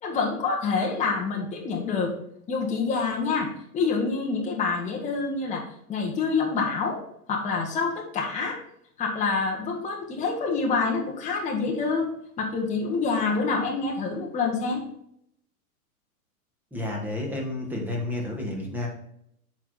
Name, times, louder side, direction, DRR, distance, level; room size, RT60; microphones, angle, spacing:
voice 1, 0.0-2.1 2.5-7.0 7.3-8.6 9.0-12.1 12.4-14.8, left 4 dB, 15° left, -1 dB, 1.0 m, -27 dB
voice 2, 16.7-18.9, left 2 dB, 5° right, -2 dB, 1.5 m, -31 dB
7.1 x 4.7 x 4.0 m, 0.71 s
hypercardioid pair, 135°, 45 cm